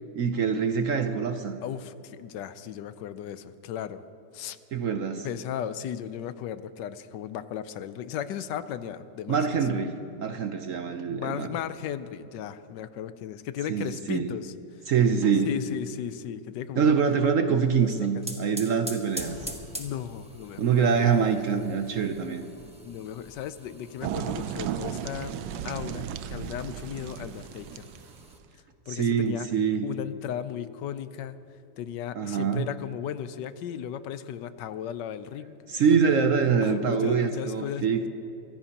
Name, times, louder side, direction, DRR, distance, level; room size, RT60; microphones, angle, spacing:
voice 1, 0.1-1.6 4.7-5.3 9.3-11.5 13.7-14.3 14.9-15.5 16.8-19.5 20.6-22.5 28.9-29.9 32.1-32.6 35.7-38.1, right 6 dB, 60° right, 7 dB, 0.9 m, -25 dB
voice 2, 1.6-4.0 4.3-4.6 5.2-9.4 11.1-14.5 15.4-17.0 18.0-18.1 19.8-21.1 22.8-25.3 25.6-27.8 28.9-29.5 29.8-31.4 31.8-35.6 36.6-37.9, left 10 dB, 80° left, 13 dB, 1.3 m, -36 dB
sound 1, 17.8-28.4, equal, 5° right, 1.1 m, -44 dB
sound 2, 24.0-28.3, right 9 dB, 85° right, 1.3 m, -35 dB
24.0 x 16.0 x 2.9 m, 3.0 s
omnidirectional pair, 1.9 m